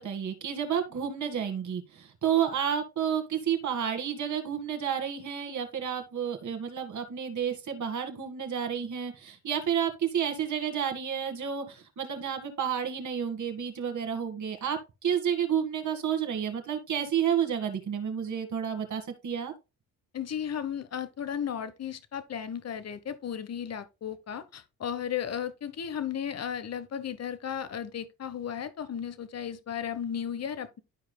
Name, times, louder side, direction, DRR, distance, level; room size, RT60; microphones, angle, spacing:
voice 1, 0.0-19.5, right 8 dB, 50° right, 2.0 m, -30 dB
voice 2, 20.1-30.8, left 8 dB, 45° left, 1.1 m, -35 dB
12.5 x 4.8 x 2.3 m
supercardioid pair, 70°, 37 cm